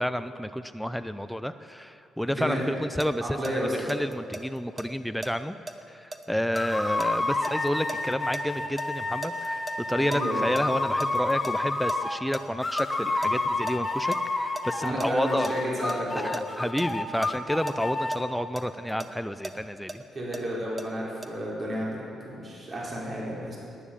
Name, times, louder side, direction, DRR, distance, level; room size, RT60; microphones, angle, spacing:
voice 1, 0.0-5.6 5.9-15.5 16.2-20.0, equal, ahead, 10 dB, 0.4 m, -30 dB
voice 2, 2.3-2.7 3.2-4.0 10.0-10.4 14.8-16.3 20.1-23.6, equal, 35° right, -5 dB, 3.9 m, -31 dB
sound 1, 3.0-8.9 9.2-11.6 11.9-12.0 12.3-12.9 13.2-16.4 16.8-16.9 17.2-17.3 17.7-17.8 18.1-20.9 21.2-21.3, right 2 dB, 20° right, 1.0 m, -38 dB
sound 2, 6.5-12.2 12.6-15.0 15.2-18.2, left 2 dB, 20° left, 1.3 m, -29 dB
12.0 x 10.5 x 8.5 m, 2.6 s
cardioid pair, 90°, 0 cm